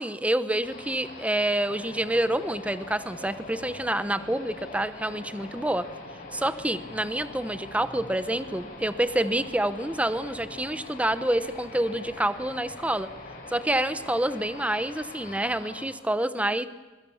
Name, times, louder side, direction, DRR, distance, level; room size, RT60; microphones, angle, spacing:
voice 1, 0.0-5.8 6.3-13.1 13.5-16.7, right 1 dB, 5° right, 12 dB, 0.9 m, -27 dB
sound 1, 0.6-15.9, left 2 dB, 45° left, 7.3 m, -43 dB
27.0 x 22.5 x 7.2 m, 1.2 s
head